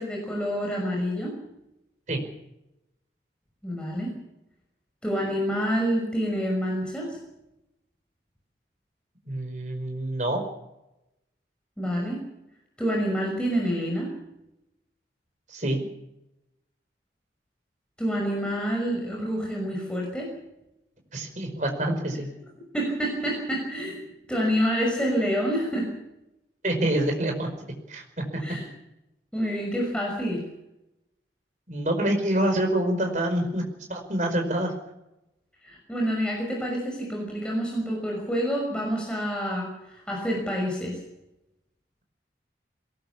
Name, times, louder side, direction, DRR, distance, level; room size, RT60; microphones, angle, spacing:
voice 1, 0.0-1.3 3.6-4.1 5.0-7.2 11.8-12.2 12.8-14.1 18.0-20.3 22.7-24.0 24.3-25.9 28.4-28.6 29.3-30.4 35.6-41.0, equal, 5° left, -2 dB, 6.0 m, -27 dB
voice 2, 9.3-10.4 15.5-15.9 21.1-22.3 26.6-27.5 27.9-28.4 31.7-33.6 33.9-34.7, right 1 dB, 45° right, 3 dB, 5.0 m, -26 dB
22.0 x 19.0 x 7.1 m, 0.90 s
head